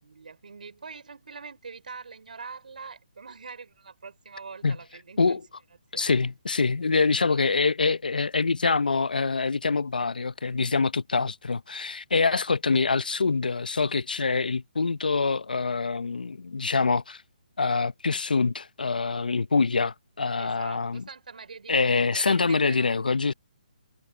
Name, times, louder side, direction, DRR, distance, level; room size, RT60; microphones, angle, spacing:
voice 1, 0.0-5.4 5.9-6.2 20.4-22.9, right 5 dB, 75° right, 4.7 m, -44 dB
voice 2, 5.9-17.2 17.6-21.0 21.7-23.3, left 4 dB, 90° left, 0.6 m, -25 dB
hypercardioid pair, 155°, 5 cm